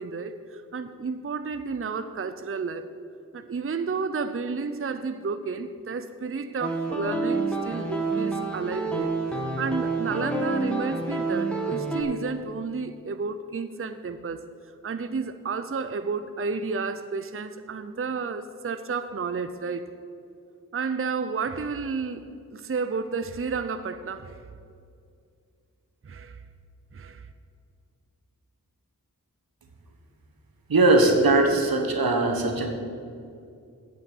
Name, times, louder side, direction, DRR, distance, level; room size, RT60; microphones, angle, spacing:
voice 1, 0.0-2.8 3.3-19.9 20.7-24.5 26.0-26.4 26.9-27.3, right 5 dB, 40° right, 10 dB, 0.6 m, -31 dB
sound 1, 6.6-12.0, right 3 dB, 5° left, 2.1 m, -28 dB
voice 2, 30.7-32.7, right 2 dB, 85° right, 3 dB, 1.5 m, -20 dB
8.4 x 7.7 x 8.4 m, 2.4 s
cardioid pair, 40°, 35 cm